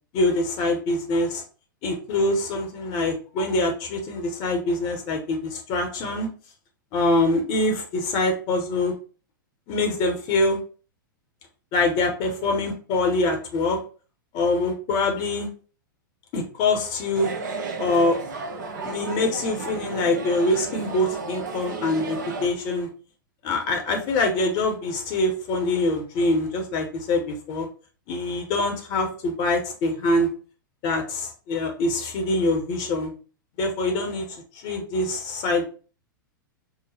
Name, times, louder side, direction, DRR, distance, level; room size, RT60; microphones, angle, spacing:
voice 1, 0.1-1.4 1.8-6.3 6.9-8.9 9.7-10.6 11.7-13.8 14.3-15.5 16.3-17.3 17.8-18.2 18.8-22.9 23.4-27.7 28.1-30.3 30.8-33.1 33.6-35.6, left 2 dB, 40° left, 4 dB, 0.9 m, -24 dB
sound 1, 17.1-22.5, right 4 dB, 60° right, 0.8 m, -33 dB
4.9 x 2.1 x 4.1 m, 0.37 s
figure-of-eight pair, 100°, 11 cm